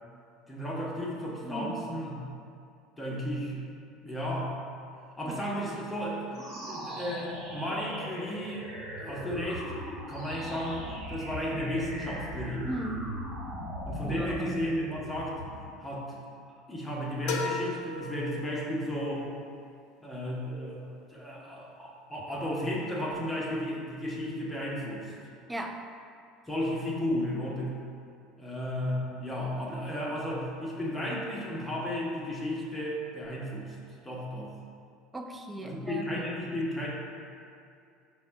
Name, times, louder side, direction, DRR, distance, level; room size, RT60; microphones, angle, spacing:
voice 1, 0.5-2.2 3.0-3.7 4.0-4.6 5.2-6.4 6.7-8.7 9.0-12.7 13.9-15.4 15.8-16.2 16.7-19.3 20.0-25.1 26.5-27.8 28.4-33.8 34.0-34.5 35.6-36.9, equal, 10° left, -5 dB, 0.8 m, -34 dB
voice 2, 1.4-1.9 5.2-5.4 12.7-13.2 14.0-14.7 25.5-25.9 35.1-36.2, right 1 dB, 15° right, 4 dB, 0.4 m, -37 dB
sound 1, 6.3-15.8, equal, 45° right, 1.3 m, -39 dB
sound 2, 17.3-19.0, left 3 dB, 75° left, 0.5 m, -36 dB
4.8 x 2.1 x 4.4 m, 2.4 s
supercardioid pair, 105°, 0 cm